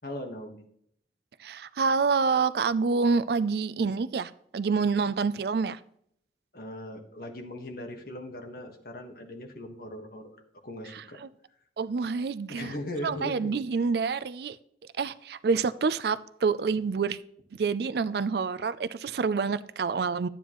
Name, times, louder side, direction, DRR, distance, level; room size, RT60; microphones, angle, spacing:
voice 1, 0.0-0.6 6.5-10.4 10.6-11.2 12.5-13.6, left 1 dB, 55° left, 1.5 m, -39 dB
voice 2, 1.4-5.8 10.9-11.3 11.8-12.7 13.0-14.6 15.0-17.2 17.6-20.3, right 5 dB, 60° right, 0.4 m, -27 dB
12.0 x 9.1 x 3.0 m
head